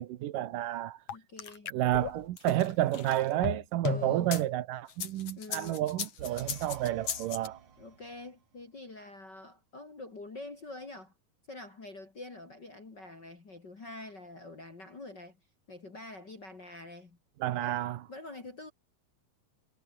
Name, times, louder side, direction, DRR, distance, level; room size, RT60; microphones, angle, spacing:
voice 1, 0.0-1.0 1.7-7.6 17.4-18.0, right 14 dB, 75° right, 2.6 m, -30 dB
sound 1, 1.1-4.4 4.9-7.5, left 8 dB, 50° left, 3.1 m, -36 dB
voice 2, 1.1-1.7 3.9-4.3 5.3-5.9 7.8-11.1 11.5-15.4 15.7-17.2 17.5-17.8 18.1-18.7, left 2 dB, 30° left, 3.3 m, -46 dB
sound 2, 6.2-8.5, right 6 dB, 55° right, 4.4 m, -50 dB
omnidirectional pair, 4.2 m